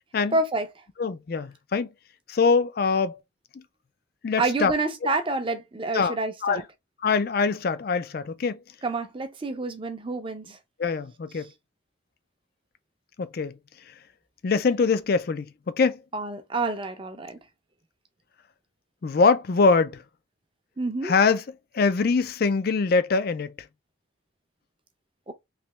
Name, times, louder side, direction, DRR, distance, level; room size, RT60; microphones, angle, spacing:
voice 1, 0.3-0.7 4.4-6.6 8.8-10.6 16.1-17.4 20.8-21.1 25.3-25.4, right 2 dB, 25° right, 0.6 m, -28 dB
voice 2, 1.0-1.9 2.3-3.2 4.2-4.7 5.9-6.2 6.4-6.6 7.0-8.6 10.8-11.5 13.2-13.6 14.4-16.0 19.0-20.0 21.0-21.4 21.7-23.5, left 4 dB, 50° left, 0.4 m, -23 dB
3.2 x 3.0 x 3.0 m
head